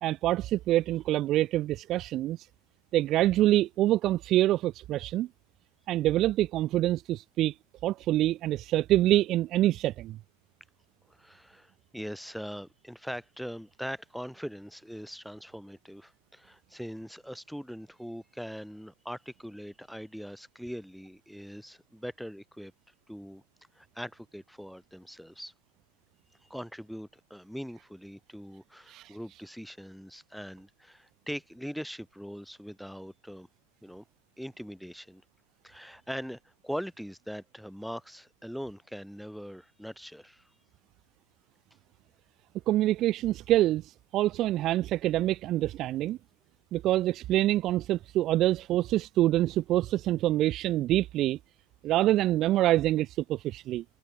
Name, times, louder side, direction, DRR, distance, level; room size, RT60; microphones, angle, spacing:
voice 1, 0.0-2.5 2.9-5.3 5.9-7.5 7.8-10.2 28.9-29.1 42.7-46.2 46.7-51.4 51.8-53.8, right 14 dB, 35° right, 0.3 m, -26 dB
voice 2, 11.1-22.7 23.1-23.4 23.8-25.5 26.4-33.5 33.8-34.0 34.4-35.2 35.6-40.5, equal, ahead, 5.4 m, -41 dB
figure-of-eight pair, 90°, 0 cm